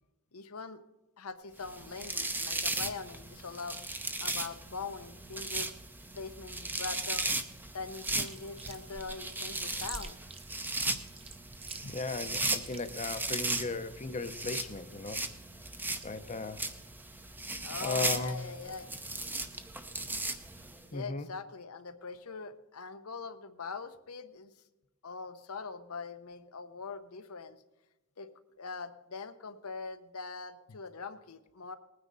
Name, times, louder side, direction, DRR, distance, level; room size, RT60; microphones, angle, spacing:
voice 1, 0.3-0.8 1.2-3.8 4.2-5.7 6.1-7.3 7.7-10.2 11.8-11.9 17.6-18.9 20.9-24.5 25.0-27.6 28.2-28.3 28.6-31.8, left 4 dB, 80° left, 0.9 m, -42 dB
sound 1, 1.6-20.8, right 2 dB, 10° right, 0.7 m, -37 dB
Chewing mastication, 8.0-13.6, right 4 dB, 25° right, 1.0 m, -46 dB
voice 2, 11.9-15.3 16.0-16.7 17.8-18.5 20.9-21.3, left 3 dB, 30° left, 0.7 m, -36 dB
20.0 x 9.7 x 4.0 m
head